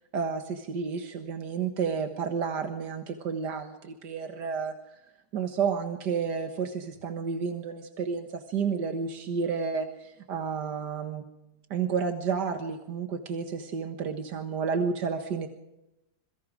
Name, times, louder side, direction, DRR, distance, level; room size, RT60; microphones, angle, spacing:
voice 1, 0.1-4.7 5.3-11.2 11.7-15.5, right 6 dB, 90° right, 6 dB, 2.1 m, -31 dB
27.0 x 22.5 x 5.0 m, 0.91 s
omnidirectional pair, 1.7 m